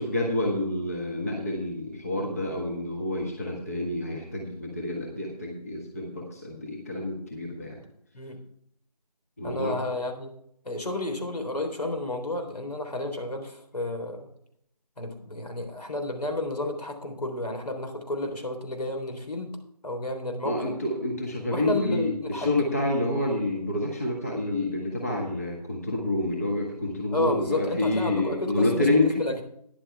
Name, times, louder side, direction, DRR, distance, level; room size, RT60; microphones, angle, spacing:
voice 1, 0.0-7.8 9.4-9.8 20.4-29.2, left 1 dB, 25° left, -1 dB, 1.5 m, -28 dB
voice 2, 9.4-10.3 10.6-14.3 15.0-19.6 19.8-20.7 21.5-22.7 27.1-28.8 29.2-29.4, left 2 dB, 75° left, 4 dB, 3.7 m, -31 dB
13.5 x 10.5 x 3.4 m, 0.71 s
figure-of-eight pair, 175°, 21 cm